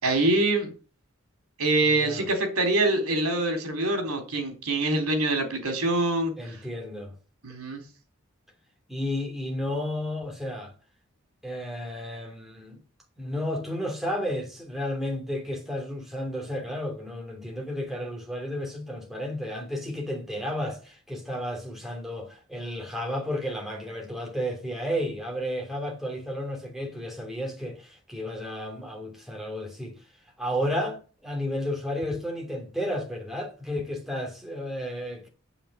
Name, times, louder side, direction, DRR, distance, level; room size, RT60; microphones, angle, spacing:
voice 1, 0.0-0.7 1.6-6.6 7.4-7.8, right 2 dB, 85° right, 3.8 m, -25 dB
voice 2, 1.9-2.3 6.4-7.1 8.9-10.7 11.4-12.8 13.2-30.0 30.4-35.3, equal, ahead, 2.7 m, -32 dB
9.0 x 7.2 x 8.7 m
head